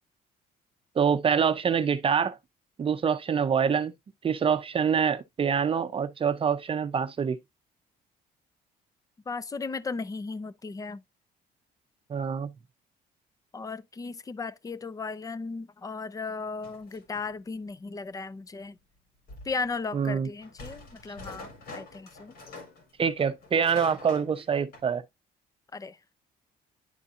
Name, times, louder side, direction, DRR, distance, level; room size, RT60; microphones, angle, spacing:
voice 1, 1.0-2.4 2.8-3.9 4.2-7.4 12.1-12.5 19.9-20.3 23.0-25.0, right 7 dB, 35° right, 0.7 m, -25 dB
voice 2, 9.3-11.0 13.5-18.8 19.4-22.3 25.7-26.0, left 4 dB, 20° left, 0.6 m, -36 dB
sound 1, 16.5-17.3 19.3-19.5 20.4-22.9 23.2-24.4 24.7-24.8, left 2 dB, 65° left, 4.0 m, -45 dB
11.0 x 4.1 x 2.5 m
cardioid pair, 110°, 17 cm